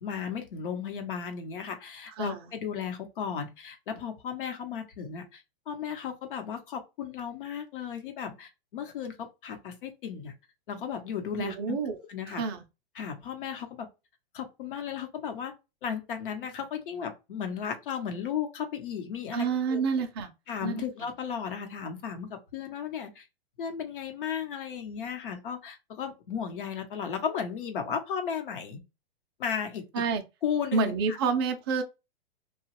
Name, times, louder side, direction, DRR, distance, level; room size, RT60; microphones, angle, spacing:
voice 1, 0.0-10.3 10.7-11.8 12.1-12.4 12.9-13.9 14.3-15.5 15.8-19.8 20.5-23.3 23.6-28.8 29.4-30.0 30.4-31.2, left 7 dB, 60° left, 0.9 m, -35 dB
voice 2, 11.4-12.0 12.3-12.6 19.3-20.3 20.6-20.8 29.9-30.2 30.7-31.8, right 5 dB, 25° right, 0.4 m, -28 dB
2.9 x 2.2 x 3.0 m
hypercardioid pair, 155°, 30 cm